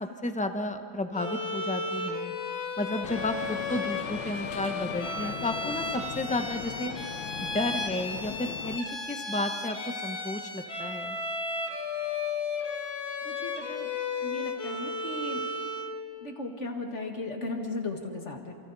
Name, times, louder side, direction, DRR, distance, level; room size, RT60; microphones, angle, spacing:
voice 1, 0.0-2.3 2.8-6.9 7.4-11.2, left 2 dB, 10° left, 7 dB, 0.4 m, -32 dB
Bowed string instrument, 1.1-16.0, left 3 dB, 60° left, 2.1 m, -34 dB
sound 1, 3.0-8.8, left 10 dB, 80° left, 1.4 m, -39 dB
voice 2, 13.2-13.9 14.2-15.4 16.2-18.5, left 2 dB, 40° left, 3 dB, 1.9 m, -36 dB
28.5 x 28.5 x 4.0 m, 2.5 s
omnidirectional pair, 1.9 m